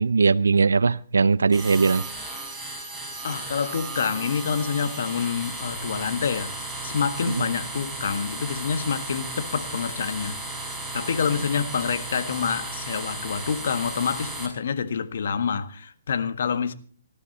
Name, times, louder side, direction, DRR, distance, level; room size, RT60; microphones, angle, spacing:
voice 1, 0.0-2.0, right 4 dB, 80° right, 0.6 m, -20 dB
sound 1, 1.5-14.5, right 2 dB, 5° right, 5.2 m, -35 dB
voice 2, 3.2-10.4 10.9-16.7, left 6 dB, 60° left, 1.6 m, -27 dB
19.5 x 14.0 x 4.1 m
figure-of-eight pair, 135°, 0 cm